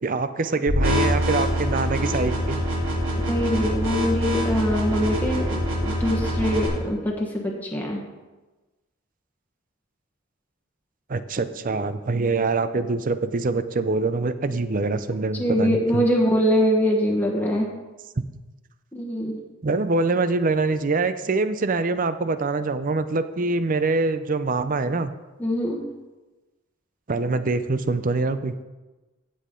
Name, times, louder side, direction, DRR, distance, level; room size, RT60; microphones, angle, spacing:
voice 1, 0.0-2.6 11.1-16.1 19.6-25.1 27.1-28.5, right 3 dB, 40° right, 12 dB, 0.5 m, -24 dB
sound 1, 0.7-6.7, equal, 65° right, 3.6 m, -24 dB
voice 2, 3.1-8.0 15.3-17.7 18.9-19.4 25.4-25.8, equal, 10° left, -2 dB, 1.4 m, -23 dB
15.0 x 7.5 x 3.8 m, 1.2 s
head